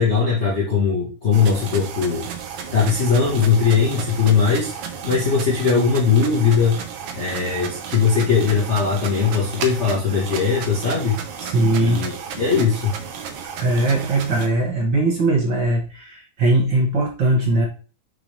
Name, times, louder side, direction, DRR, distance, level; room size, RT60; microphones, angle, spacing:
voice 1, 0.0-2.3 2.7-4.7 5.0-6.8 7.2-11.2 11.8-12.9, left 5 dB, 90° left, -5 dB, 0.6 m, -19 dB
sound 1, 1.3-14.5, right 7 dB, 70° right, 1.4 m, -33 dB
voice 2, 11.4-12.1 13.6-17.7, right 2 dB, 45° right, -1 dB, 1.7 m, -20 dB
6.1 x 4.7 x 3.3 m, 0.34 s
omnidirectional pair, 3.6 m